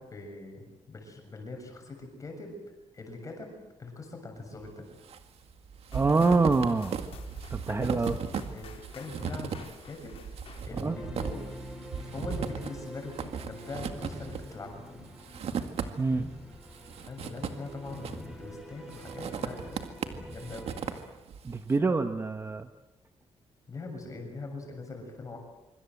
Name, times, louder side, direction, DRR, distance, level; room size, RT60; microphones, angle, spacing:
voice 1, 0.0-2.6 2.9-3.5 3.8-4.9 7.7-8.2 8.5-8.7 8.9-10.2 10.6-11.4 12.1-14.8 17.1-19.8 20.3-20.7 23.7-25.4, left 3 dB, 30° left, 3 dB, 7.2 m, -42 dB
sound 1, 4.6-5.2 5.5-16.3 16.6-18.4 18.9-21.6, right 6 dB, 60° right, 2.1 m, -37 dB
sound 2, 5.9-11.8, left 6 dB, 60° left, 4.1 m, -52 dB
voice 2, 5.9-7.0 7.5-8.2 10.8-11.0 16.0-16.2 21.4-22.7, right 3 dB, 20° right, 8 dB, 1.1 m, -26 dB
sound 3, 10.9-21.1, equal, 5° right, 4.5 m, -45 dB
25.5 x 25.0 x 7.9 m, 0.98 s
wide cardioid pair, 170°, 11 cm